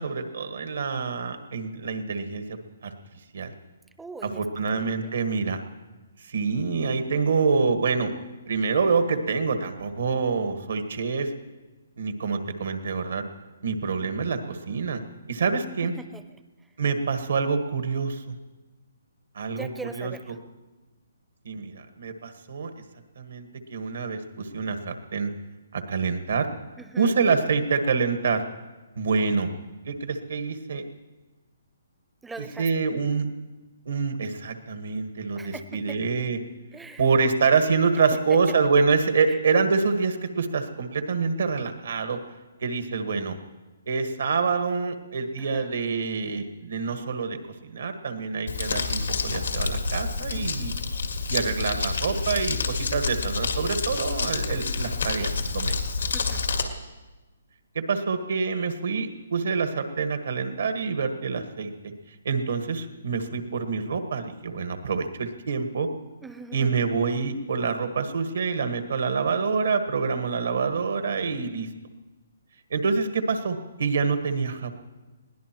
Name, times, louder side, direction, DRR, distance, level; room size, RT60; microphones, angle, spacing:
voice 1, 0.0-2.9 3.3-3.5 4.2-5.6 6.2-8.1 8.5-11.3 12.0-13.2 13.6-15.0 15.3-15.9 16.8-18.2 19.3-19.7 19.9-20.1 21.4-22.7 23.2-25.3 25.7-26.5 27.0-28.4 28.9-29.5 29.8-30.8 32.6-33.3 33.8-36.4 37.0-42.2 42.6-43.4 43.9-47.4 47.6-50.7 51.3-55.8 57.7-61.7 62.2-65.9 66.5-71.7 72.7-74.7, right 5 dB, 70° right, 7 dB, 1.6 m, -26 dB
voice 2, 4.0-5.1 15.8-16.4 19.6-20.4 26.8-27.1 32.2-32.7 35.4-36.0 36.7-37.0 38.1-38.6 39.3-39.4 45.4-45.8 56.1-56.4 66.2-66.9, right 3 dB, 5° right, 9 dB, 0.7 m, -41 dB
Crumpling crinkling, 48.5-56.6, left 4 dB, 85° left, 1.9 m, -28 dB
21.5 x 17.0 x 3.1 m, 1.2 s
hypercardioid pair, 145°, 0 cm